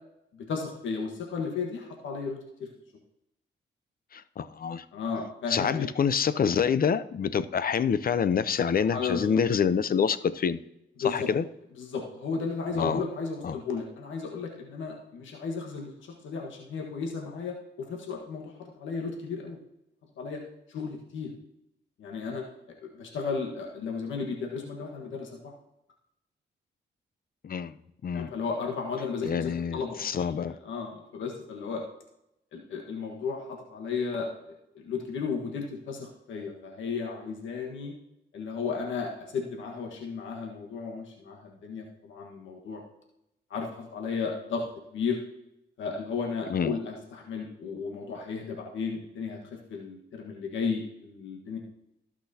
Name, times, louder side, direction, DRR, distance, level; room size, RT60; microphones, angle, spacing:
voice 1, 0.5-2.7 4.9-5.9 8.8-9.2 11.0-11.3 11.8-19.6 20.2-20.4 20.7-21.3 22.0-22.4 22.8-25.5 28.1-31.8 32.5-37.9 38.3-42.8 43.5-44.6 44.9-45.2 45.8-51.6, left 5 dB, 80° left, 1 dB, 1.5 m, -34 dB
voice 2, 4.1-4.9 5.5-10.6 11.0-11.4 12.7-13.0 13.4-13.6 27.4-27.7 28.0-28.3 29.3-30.5 46.5-46.8, left 7 dB, 50° left, 14 dB, 0.7 m, -27 dB
18.0 x 6.1 x 2.8 m, 0.84 s
cardioid pair, 70°, 19 cm